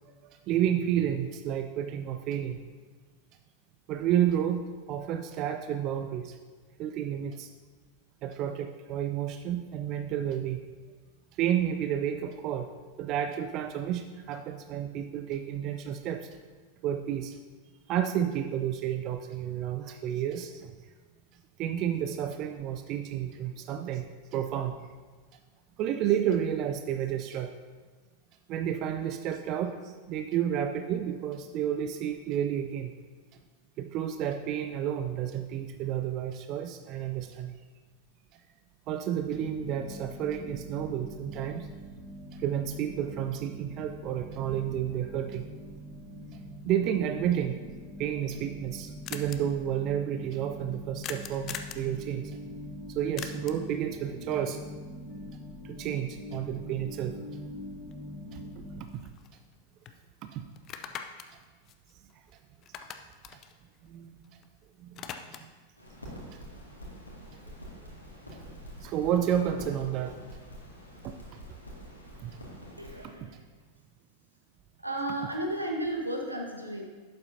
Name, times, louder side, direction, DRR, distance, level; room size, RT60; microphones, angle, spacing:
voice 1, 0.2-2.6 3.9-6.4 6.8-7.5 8.2-10.6 11.3-12.7 13.0-16.4 16.8-17.4 17.9-20.7 21.6-24.1 24.3-24.8 25.8-27.5 28.5-32.9 33.8-37.5 38.9-41.7 42.3-45.5 46.3-46.4 46.7-47.5 48.0-52.4 52.9-54.6 55.6-57.2 58.3-58.4 58.8-59.0 60.2-60.4 63.8-64.4 64.8-65.5 66.1-66.4 68.3-70.1 71.0-71.2 72.2-72.4, right 10 dB, 40° right, 8 dB, 0.4 m, -31 dB
sound 1, 39.2-58.8, equal, 20° right, 1.4 m, -43 dB
sound 2, 48.1-48.2 48.4-48.5 48.7-48.8 49.1-49.4 51.0-51.9 53.2-53.7 57.9-58.0 58.4-59.5 59.9-60.0 60.6-62.3 62.6-64.5 64.7-65.6, left 8 dB, 35° left, 0.6 m, -42 dB
sound 3, 65.8-73.1, equal, 85° left, 2.1 m, -46 dB
voice 2, 72.8-73.4 74.8-76.9, right 1 dB, 85° right, 1 dB, 1.2 m, -33 dB
11.5 x 8.5 x 2.7 m, 1.4 s
figure-of-eight pair, 90°, 0 cm